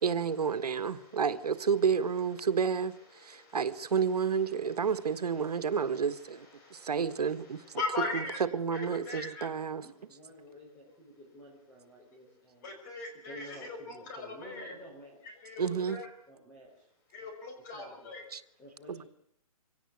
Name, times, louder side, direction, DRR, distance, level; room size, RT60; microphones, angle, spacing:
voice 1, 0.0-7.6 8.1-8.2 8.5-9.9 15.6-16.0 18.3-18.4, right 6 dB, 90° right, 1.6 m, -30 dB
voice 2, 3.1-3.6 4.6-4.9 5.4-6.2 6.6-8.4 8.7-9.5 12.6-14.7 15.4-16.1 17.1-18.3, left 3 dB, 30° left, 5.6 m, -40 dB
voice 3, 9.8-12.7 13.1-16.0 16.3-16.9 17.7-18.1 18.6-19.1, equal, 10° left, 4.6 m, -52 dB
24.0 x 17.5 x 8.4 m
hypercardioid pair, 165°, 19 cm